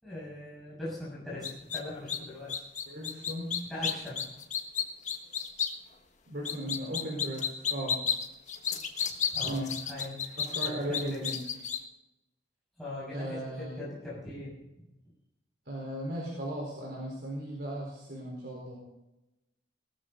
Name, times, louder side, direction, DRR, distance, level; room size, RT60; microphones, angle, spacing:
voice 1, 0.0-2.5 3.7-4.2 5.2-5.3 9.3-11.2 12.8-14.5, left 1 dB, ahead, -9 dB, 6.3 m, -40 dB
sound 1, 1.4-1.8 2.1-2.2 2.5-5.7 6.4-11.8, left 7 dB, 45° left, 1.5 m, -31 dB
voice 2, 2.9-3.5 6.3-8.0 9.4-9.7 10.4-11.4 13.1-13.8 15.7-18.8, right 1 dB, 65° right, -2 dB, 4.4 m, -37 dB
19.0 x 14.0 x 4.0 m, 0.94 s
head